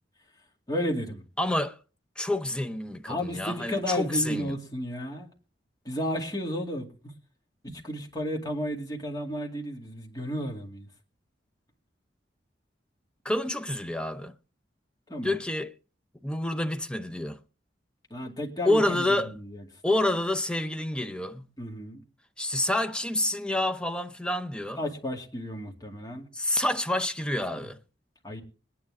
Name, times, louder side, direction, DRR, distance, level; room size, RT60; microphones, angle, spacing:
voice 1, 0.7-1.2 3.1-5.3 5.8-6.9 7.6-10.9 15.1-15.4 18.1-19.0 19.3-19.7 21.6-22.0 24.8-26.3 27.5-27.6 28.2-28.4, equal, 20° left, 2.5 m, -33 dB
voice 2, 1.4-1.8 2.2-4.5 13.2-14.3 15.2-15.7 16.2-17.4 18.6-19.3 19.8-21.5 22.4-24.8 26.3-27.8, left 1 dB, 5° left, 0.7 m, -28 dB
21.5 x 9.7 x 3.7 m
head